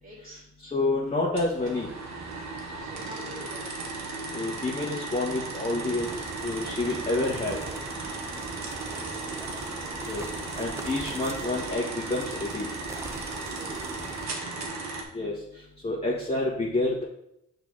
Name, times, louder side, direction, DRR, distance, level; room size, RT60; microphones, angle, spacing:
voice 1, 0.0-0.4 2.8-3.7 8.9-9.3 13.9-14.8, equal, 30° right, -4 dB, 2.8 m, -47 dB
voice 2, 0.6-1.9 4.3-7.6 10.0-10.2 10.6-12.7 15.1-15.3 15.8-17.0, left 2 dB, 20° left, -4 dB, 1.5 m, -28 dB
sound 1, 1.4-15.0, right 3 dB, 65° right, 1.4 m, -36 dB
sound 2, 6.0-14.3, right 2 dB, 10° right, 0.4 m, -42 dB
6.6 x 4.0 x 4.8 m, 0.80 s
cardioid pair, 90°, 30 cm